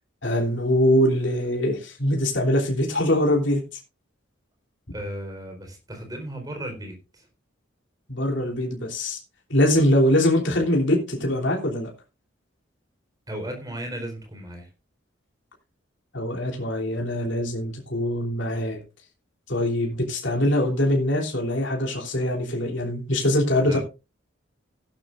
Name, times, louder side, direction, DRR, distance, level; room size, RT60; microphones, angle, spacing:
voice 1, 0.2-3.6 8.1-9.2 9.5-11.9 16.1-18.8 19.5-23.8, left 1 dB, 60° left, 0 dB, 3.3 m, -23 dB
voice 2, 4.9-7.3 13.3-14.7 23.6-23.8, right 1 dB, 20° right, 4 dB, 4.0 m, -35 dB
15.5 x 11.5 x 2.5 m, 0.29 s
head